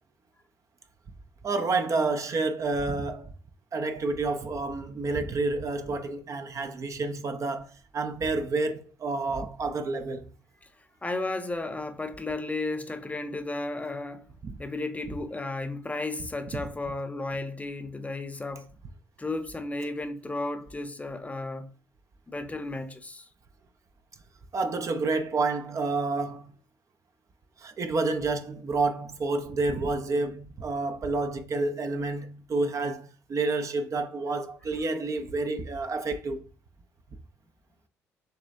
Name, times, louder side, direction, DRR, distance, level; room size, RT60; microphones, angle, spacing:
voice 1, 1.4-3.3 3.7-10.3 14.4-14.6 24.5-26.5 27.6-36.4, right 3 dB, 40° right, 0.7 m, -29 dB
voice 2, 11.0-14.3 14.6-18.7 19.2-21.7 22.3-23.3, left 2 dB, 20° left, 0.8 m, -33 dB
6.6 x 3.0 x 2.6 m
hypercardioid pair, 50°, 8 cm